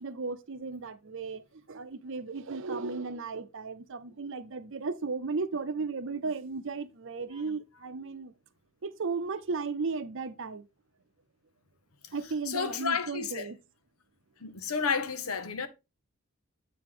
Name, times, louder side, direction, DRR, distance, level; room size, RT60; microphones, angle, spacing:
voice 1, 0.0-8.3 8.8-10.7 12.1-13.6, right 4 dB, 65° right, 0.7 m, -35 dB
voice 2, 12.5-13.5 14.4-15.7, left 5 dB, 90° left, 0.9 m, -31 dB
7.8 x 4.8 x 3.8 m
head